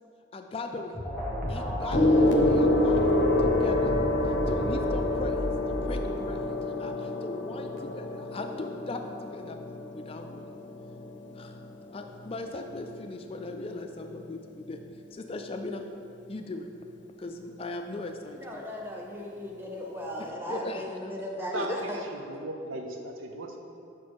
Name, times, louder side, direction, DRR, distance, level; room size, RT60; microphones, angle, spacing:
voice 1, 0.3-1.0 1.5-3.9 4.5-9.6 9.9-10.5 11.3-11.6 11.9-14.8 15.1-15.8 16.3-16.7 17.2-18.6 20.2-21.1 21.5-21.9, left 2 dB, 30° left, 5 dB, 0.4 m, -39 dB
sound 1, 0.9-6.4, equal, 5° left, 1.2 m, -33 dB
Gong, 1.9-11.7 12.6-12.9, left 1 dB, 65° left, 0.6 m, -27 dB
voice 2, 18.4-22.0, left 1 dB, 10° right, -2 dB, 0.7 m, -37 dB
voice 3, 21.4-22.0 22.3-23.6, right 2 dB, 90° right, 3 dB, 0.7 m, -37 dB
6.2 x 4.1 x 4.7 m, 2.6 s
head